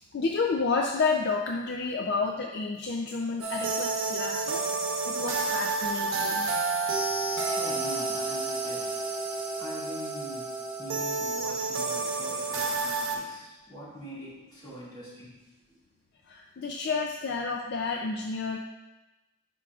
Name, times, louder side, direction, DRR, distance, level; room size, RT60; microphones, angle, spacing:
voice 1, 0.0-4.7 5.1-6.5 16.3-18.6, left 4 dB, 50° left, 2 dB, 0.4 m, -30 dB
sound 1, 3.4-13.2, right 3 dB, 65° right, 0.9 m, -30 dB
voice 2, 7.4-8.9 9.6-10.5 10.8-15.4 15.7-15.8, equal, 20° left, -8 dB, 2.0 m, -43 dB
11.0 x 4.6 x 2.4 m, 1.0 s
head